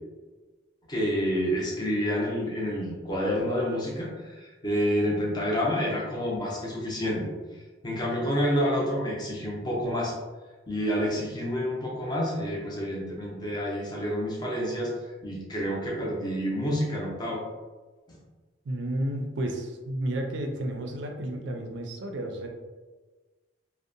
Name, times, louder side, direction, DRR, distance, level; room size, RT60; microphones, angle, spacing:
voice 1, 0.9-10.1 10.7-17.4, equal, 20° left, -3 dB, 0.5 m, -29 dB
voice 2, 18.7-22.5, right 1 dB, 65° right, 3 dB, 0.4 m, -32 dB
2.7 x 2.0 x 2.6 m, 1.3 s
head